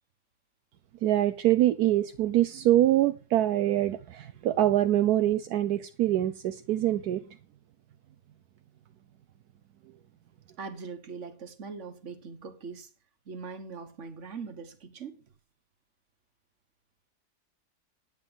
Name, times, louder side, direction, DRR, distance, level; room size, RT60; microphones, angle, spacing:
voice 1, 1.0-7.2, right 13 dB, 75° right, 1.2 m, -24 dB
voice 2, 10.6-12.9 13.3-15.2, right 5 dB, 50° right, 1.7 m, -41 dB
9.8 x 8.9 x 5.6 m
omnidirectional pair, 1.7 m